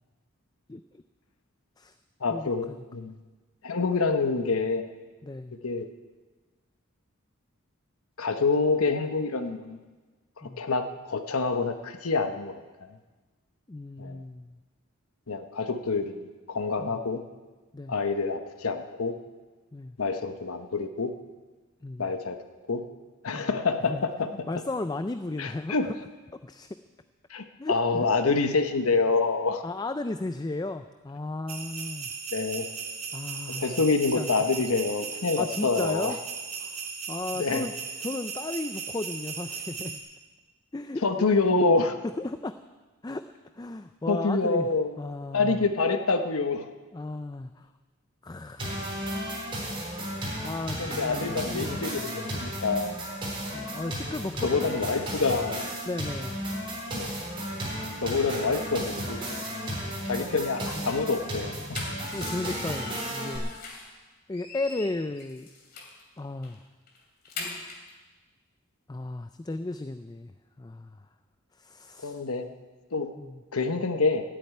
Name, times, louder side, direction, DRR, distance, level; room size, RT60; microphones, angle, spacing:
voice 1, 0.7-1.0 1.8-1.9 2.3-2.8 5.2-5.5 10.4-10.6 13.7-14.6 16.8-17.0 17.7-17.9 19.7-20.0 21.8-22.1 23.3-23.5 23.9-24.0 24.5-25.9 26.4-26.7 27.6-28.1 29.6-32.1 33.1-33.8 34.1-34.3 34.6-34.7 35.4-36.2 36.6-37.7 38.0-40.0 40.7-41.9 42.2-42.6 43.0-43.2 43.5-44.7 45.0-45.6 46.9-47.7 48.2-49.0 50.4-52.2 53.5-55.0 55.9-56.4 57.7-58.0 60.3-60.9 62.1-63.5 64.3-65.5 66.2-66.6 68.9-71.1 71.5-72.2 73.2-73.4, left 2 dB, 20° left, 9 dB, 0.4 m, -35 dB
voice 2, 2.2-3.1 3.6-4.8 5.6-5.9 8.2-9.8 10.4-12.6 14.0-14.2 15.3-17.2 17.9-19.1 20.0-21.1 22.0-22.4 22.7-22.8 23.2-24.3 25.4-25.9 27.3-29.6 32.3-32.7 33.6-36.2 37.3-37.7 41.0-42.0 44.1-44.9 45.3-46.7 50.8-53.0 54.4-55.7 56.9-57.1 58.0-59.2 60.0-61.8 72.0-72.5 72.9-73.1 73.5-74.2, left 4 dB, 85° left, 8 dB, 1.0 m, -27 dB
sound 1, 31.5-40.0, right 5 dB, 85° right, 3.0 m, -37 dB
sound 2, 48.6-63.4, equal, 25° right, 4.2 m, -34 dB
sound 3, 61.7-64.0 64.3-66.0 66.4-66.6 66.9-67.9, left 3 dB, 45° left, 2.8 m, -41 dB
14.5 x 8.6 x 9.5 m, 1.3 s
head